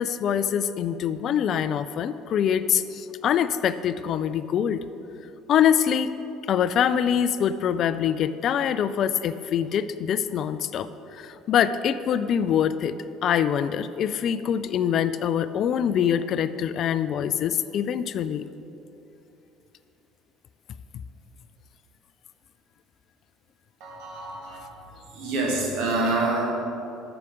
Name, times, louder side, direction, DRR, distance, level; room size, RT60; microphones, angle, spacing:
voice 1, 0.0-4.8 5.5-6.1 6.5-12.9 13.2-18.5, left 8 dB, 45° left, 13 dB, 0.3 m, -24 dB
voice 2, 23.8-24.6 25.1-26.5, right 2 dB, 55° right, -2 dB, 1.8 m, -26 dB
9.1 x 6.9 x 4.8 m, 2.9 s
figure-of-eight pair, 60°, 0 cm